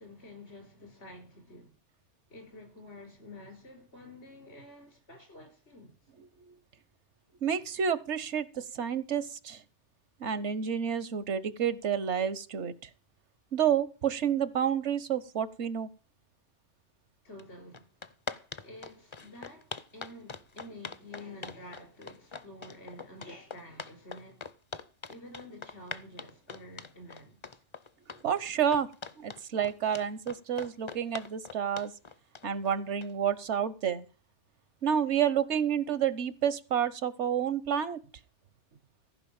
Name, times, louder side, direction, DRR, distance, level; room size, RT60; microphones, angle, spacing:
voice 1, 0.0-1.7 2.3-6.0 17.2-17.9 18.6-24.5 25.1-27.6, left 1 dB, 75° left, 4.9 m, -49 dB
voice 2, 7.4-9.6 10.2-12.7 13.5-15.9 28.2-28.9 29.2-31.9 32.4-34.1 34.8-38.0, right 8 dB, 85° right, 1.2 m, -29 dB
sound 1, 17.4-17.5 17.7-33.3, left 5 dB, 35° left, 0.6 m, -42 dB
15.0 x 5.4 x 8.7 m
omnidirectional pair, 1.2 m